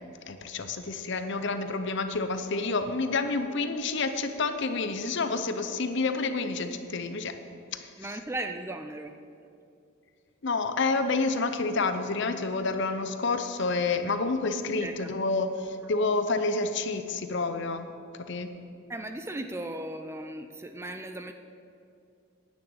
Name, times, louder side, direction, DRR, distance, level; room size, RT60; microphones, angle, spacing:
voice 1, 0.3-7.3 7.7-7.9 10.4-17.9 18.3-18.5, left 3 dB, 55° left, 9 dB, 0.7 m, -29 dB
voice 2, 8.0-9.1 14.8-15.1 18.9-21.3, right 1 dB, 10° right, 7 dB, 0.4 m, -37 dB
9.8 x 6.2 x 8.7 m, 2.5 s
head